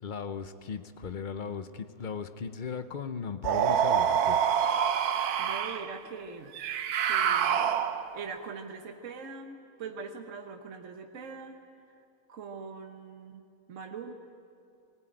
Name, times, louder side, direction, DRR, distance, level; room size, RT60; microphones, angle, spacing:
voice 1, 0.0-4.4, left 6 dB, 45° left, 10 dB, 0.7 m, -37 dB
sound 1, 3.4-5.9 6.6-8.2, right 8 dB, 90° right, 1.3 m, -26 dB
voice 2, 5.4-6.5 7.0-11.5 12.3-14.1, right 5 dB, 60° right, 4 dB, 1.4 m, -42 dB
19.5 x 16.5 x 9.0 m, 2.5 s
omnidirectional pair, 1.6 m